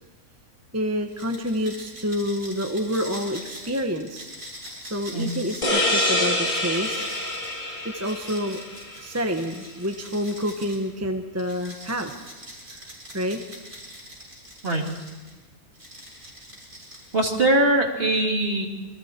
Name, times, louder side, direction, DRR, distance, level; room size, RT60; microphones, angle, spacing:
voice 1, 0.7-4.3 4.8-7.0 7.8-8.6 9.0-12.1 13.1-13.4, equal, 10° right, 4 dB, 1.0 m, -28 dB
sound 1, 1.1-10.8 11.4-15.3 15.7-17.6, equal, 60° right, 7.2 m, -43 dB
sound 2, 5.6-9.1, left 1 dB, 30° left, 2.7 m, -26 dB
voice 2, 17.1-18.7, right 2 dB, 40° right, 1 dB, 2.7 m, -21 dB
28.0 x 23.0 x 4.5 m, 1.2 s
omnidirectional pair, 1.6 m